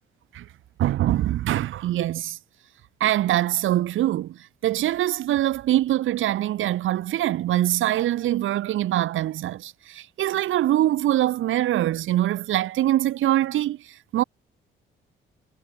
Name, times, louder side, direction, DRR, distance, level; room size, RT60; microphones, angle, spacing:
voice 1, 0.8-2.4 3.0-14.2, right 13 dB, 80° right, 6.0 m, -23 dB
cardioid pair, 90°, 20 cm